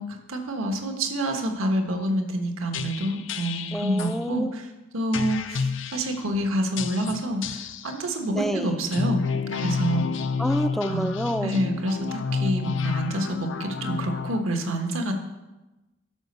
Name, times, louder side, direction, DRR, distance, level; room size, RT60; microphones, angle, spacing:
voice 1, 0.0-4.6 4.9-9.2 9.5-10.1 10.9-11.1 11.4-15.1, right 1 dB, 75° right, 4 dB, 1.4 m, -27 dB
sound 1, 2.7-4.2 5.1-6.2 6.8-7.9 8.8-14.4, left 5 dB, 60° left, 0.6 m, -30 dB
voice 2, 3.7-4.6 8.3-8.8 10.4-11.5, equal, ahead, 8 dB, 0.4 m, -28 dB
12.0 x 5.2 x 6.7 m, 1.1 s
head